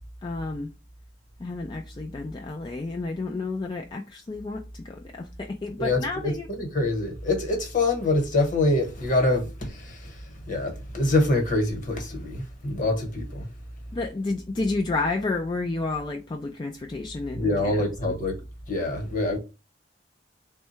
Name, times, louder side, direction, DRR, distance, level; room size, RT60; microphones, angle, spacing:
voice 1, 0.2-0.7 1.4-6.4 13.9-18.2, left 3 dB, 25° left, 0.3 m, -31 dB
voice 2, 5.8-13.5 17.3-18.4 18.7-19.4, left 2 dB, 45° left, 1.1 m, -25 dB
3.5 x 2.2 x 4.2 m
head